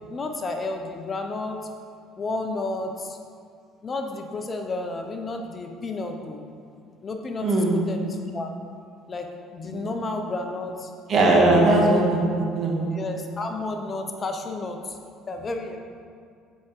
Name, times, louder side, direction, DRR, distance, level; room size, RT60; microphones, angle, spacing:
voice 1, 0.1-1.6 2.2-3.2 3.8-6.4 7.0-8.5 9.1-10.9 11.5-11.9 12.9-15.0 15.3-15.8, left 2 dB, 35° left, 4 dB, 0.7 m, -31 dB
voice 2, 7.4-7.8 9.7-9.9 11.1-12.2 12.5-12.9, right 2 dB, 50° right, -1 dB, 1.5 m, -19 dB
7.2 x 4.8 x 4.4 m, 2.3 s
supercardioid pair, 90°, 0 cm